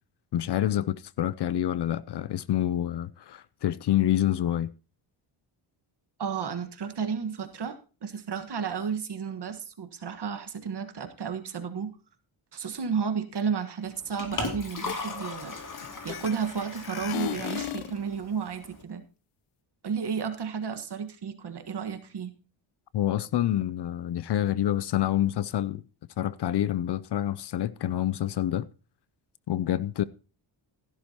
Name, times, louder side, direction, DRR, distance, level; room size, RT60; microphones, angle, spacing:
voice 1, 0.3-4.7 22.9-25.8 26.2-28.7 29.5-30.0, left 12 dB, 55° left, 0.5 m, -27 dB
voice 2, 6.2-12.0 12.5-19.0 19.8-22.3, right 6 dB, 50° right, 1.5 m, -32 dB
Liquid, 13.8-18.8, left 3 dB, 40° left, 2.3 m, -38 dB
sound 1, 14.3-14.5 14.8-16.6 16.9-18.0, left 12 dB, 90° left, 0.8 m, -35 dB
13.5 x 12.0 x 2.9 m
cardioid pair, 90°, 50 cm